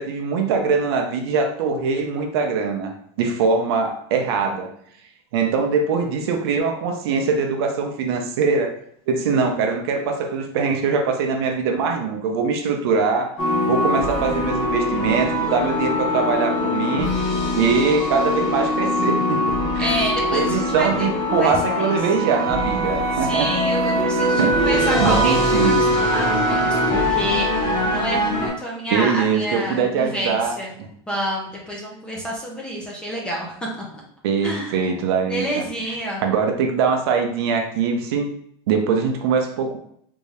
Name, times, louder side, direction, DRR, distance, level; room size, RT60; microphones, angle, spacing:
voice 1, 0.0-4.7 5.3-8.7 9.1-13.4 13.7-17.1 17.6-19.4 19.7-19.9 20.3-23.5 24.4-26.0 28.9-30.9 34.2-35.6 36.2-38.3 38.7-39.8, right 5 dB, 60° right, 4 dB, 0.6 m, -22 dB
sound 1, 13.4-28.5, equal, 30° left, 1.0 m, -22 dB
voice 2, 19.8-21.9 23.1-30.7 31.1-34.0 34.4-34.8 35.3-36.2, right 1 dB, 5° left, -3 dB, 0.6 m, -28 dB
3.5 x 2.7 x 3.2 m, 0.66 s
supercardioid pair, 170°, 15 cm